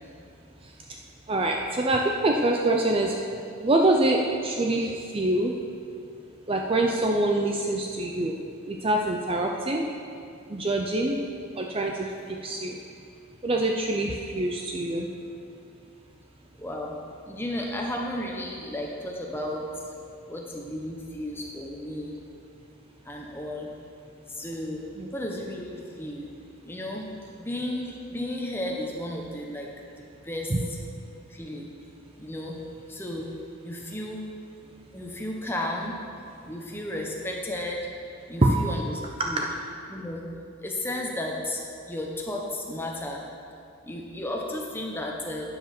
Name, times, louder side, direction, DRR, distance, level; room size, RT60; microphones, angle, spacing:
voice 1, 1.3-3.1 3.6-5.5 6.5-8.4 8.7-9.9 10.5-11.2 11.6-12.8 13.4-15.1 25.0-25.1 30.5-30.7 38.4-38.7 39.2-39.5, right 2 dB, 25° right, 1 dB, 0.5 m, -25 dB
voice 2, 16.6-17.0 17.3-19.7 20.3-22.2 23.0-23.7 24.3-26.3 26.6-27.1 27.4-29.7 30.2-30.5 31.3-31.7 32.2-32.6 32.9-33.3 33.6-34.2 34.9-36.0 36.5-37.9 38.3-39.0 39.3-39.4 39.9-40.2 40.6-43.2 43.8-45.4, left 1 dB, 10° left, -1 dB, 1.0 m, -33 dB
9.2 x 7.7 x 5.9 m, 2.4 s
head